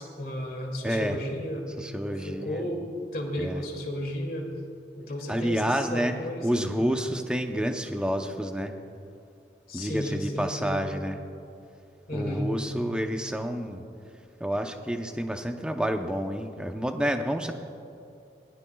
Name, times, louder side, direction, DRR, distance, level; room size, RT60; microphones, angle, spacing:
voice 1, 0.0-1.7 2.1-2.8 3.1-4.5 5.0-6.9 9.7-10.8 12.1-12.5, equal, 50° left, 0 dB, 2.5 m, -33 dB
voice 2, 0.8-1.2 1.8-2.6 3.4-3.6 5.3-6.2 6.4-8.7 9.7-11.2 12.1-13.8 14.4-17.5, equal, 5° right, 5 dB, 0.7 m, -29 dB
24.0 x 20.0 x 2.3 m, 2.7 s
head